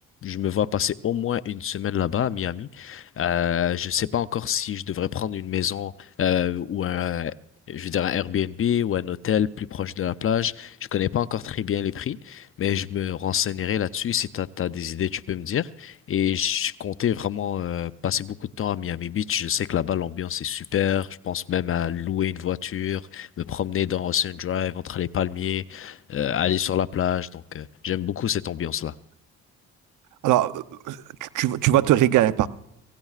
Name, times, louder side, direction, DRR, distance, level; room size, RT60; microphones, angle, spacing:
voice 1, 0.2-7.3 7.7-28.9, left 10 dB, 45° left, 0.5 m, -27 dB
voice 2, 30.2-32.5, right 13 dB, 85° right, 0.7 m, -21 dB
25.5 x 17.5 x 2.4 m
cardioid pair, 90°, 30 cm